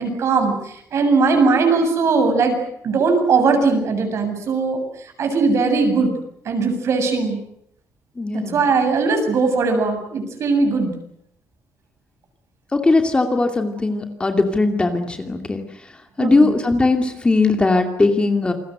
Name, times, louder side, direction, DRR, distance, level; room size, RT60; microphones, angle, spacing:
voice 1, 0.0-2.6 2.8-4.8 5.2-6.1 6.4-7.4 8.3-10.9 16.2-16.5, right 4 dB, 55° right, 5 dB, 7.6 m, -19 dB
voice 2, 8.2-8.6 12.7-15.6 16.2-18.5, left 3 dB, 15° left, 5 dB, 2.6 m, -19 dB
28.5 x 21.0 x 8.1 m, 0.73 s
cardioid pair, 140°, 6 cm